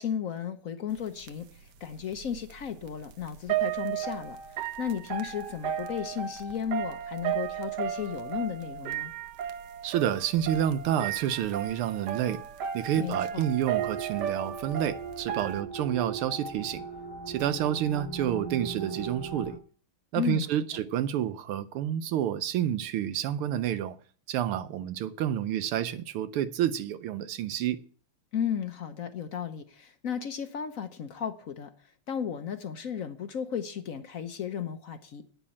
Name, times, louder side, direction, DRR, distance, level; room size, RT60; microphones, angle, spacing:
voice 1, 0.0-1.5 1.8-4.4 4.8-9.1 13.0-13.5 20.2-20.7 28.3-31.7 32.1-35.2, left 8 dB, 60° left, 0.9 m, -34 dB
sound 1, 1.0-1.1 1.3-15.6, right 10 dB, 65° right, 1.2 m, -34 dB
voice 2, 9.8-12.4 12.7-16.8 17.3-19.6 20.1-24.0 24.3-27.8, right 10 dB, 90° right, 1.6 m, -29 dB
sound 2, 13.7-19.6, right 4 dB, 15° left, 1.2 m, -39 dB
9.3 x 6.1 x 8.5 m
omnidirectional pair, 2.3 m